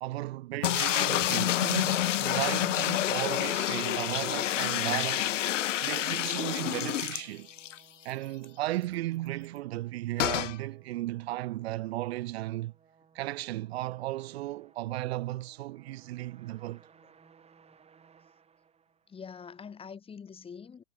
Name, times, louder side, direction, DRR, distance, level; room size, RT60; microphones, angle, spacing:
voice 1, 0.0-5.4 5.8-7.5 8.0-12.7 13.1-16.8, right 16 dB, 55° right, 2.4 m, -35 dB
sound 1, 0.6-7.8 8.1-8.2 8.4-8.5 10.2-10.6, left 12 dB, 70° left, 0.8 m, -28 dB
sound 2, 3.2-19.5, right 6 dB, 15° right, 7.5 m, -62 dB
voice 2, 19.1-20.8, left 6 dB, 15° left, 2.8 m, -46 dB
hypercardioid pair, 120°, 38 cm